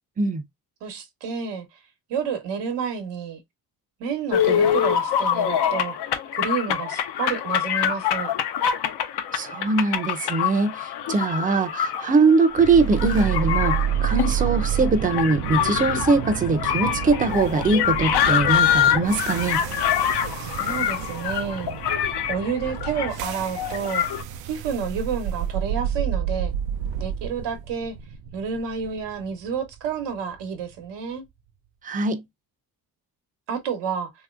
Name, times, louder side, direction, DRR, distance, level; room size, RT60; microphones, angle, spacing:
voice 1, 0.8-1.7 2.1-3.4 4.0-6.0 6.3-8.3 20.4-21.7 22.3-24.1 24.4-26.5 27.0-27.9 28.3-31.2 33.5-34.1, right 6 dB, 80° right, 1.1 m, -30 dB
sound 1, 4.3-24.2, left 9 dB, 65° left, 0.7 m, -25 dB
voice 2, 9.3-19.6 31.8-32.2, right 3 dB, 20° right, 0.6 m, -22 dB
sound 2, 12.6-30.7, right 9 dB, 60° right, 0.5 m, -30 dB
3.0 x 2.9 x 2.4 m
cardioid pair, 80°, 42 cm